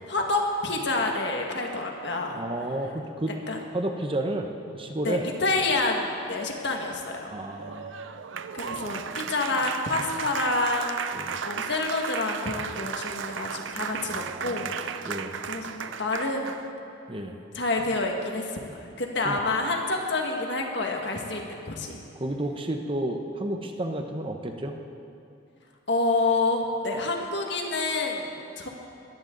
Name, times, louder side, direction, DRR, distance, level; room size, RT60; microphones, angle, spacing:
voice 1, 0.1-2.4 3.5-3.6 5.0-7.3 8.5-11.0 11.4-15.1 15.4-16.6 17.5-18.7 19.0-22.0 25.9-28.7, left 2 dB, 60° left, 1 dB, 1.8 m, -28 dB
voice 2, 2.3-3.3 3.7-4.5 4.7-5.2 7.3-7.9 11.1-11.4 14.1-14.7 15.0-15.3 17.1-17.4 19.2-19.4 22.2-24.7, right 1 dB, 25° right, 4 dB, 0.9 m, -31 dB
Applause, 7.5-16.7, right 7 dB, 70° right, 0.5 m, -35 dB
21.0 x 15.0 x 3.9 m, 2.7 s
head